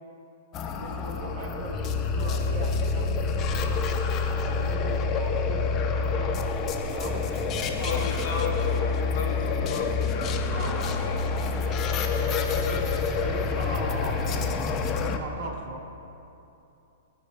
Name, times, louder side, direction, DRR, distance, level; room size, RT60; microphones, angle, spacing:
sound 1, 0.5-15.2, left 4 dB, 30° left, 0.6 m, -27 dB
voice 1, 0.6-3.8 4.3-6.5 6.9-8.6 10.5-11.0 12.1-12.8 13.2-15.8, right 2 dB, 55° right, 1 dB, 1.2 m, -39 dB
sound 2, 6.8-14.6, right 3 dB, 30° right, 1.0 m, -47 dB
voice 2, 7.6-11.2 12.2-12.8 13.1-13.2, left 4 dB, 70° left, 4 dB, 0.9 m, -36 dB
13.0 x 4.6 x 4.3 m, 2.8 s
hypercardioid pair, 130°, 0 cm